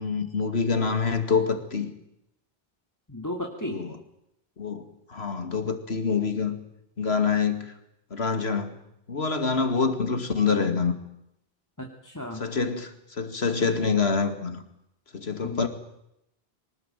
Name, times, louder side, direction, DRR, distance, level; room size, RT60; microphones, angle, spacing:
voice 1, 0.0-1.9 3.6-4.0 4.6-6.6 7.0-7.7 8.1-8.8 9.1-11.0 12.4-14.6 15.1-15.7, left 5 dB, 80° left, 8 dB, 2.5 m, -26 dB
voice 2, 3.1-3.8 11.8-12.4 15.4-15.7, left 1 dB, 15° left, 1 dB, 2.6 m, -34 dB
24.0 x 19.5 x 9.1 m, 0.80 s
omnidirectional pair, 1.1 m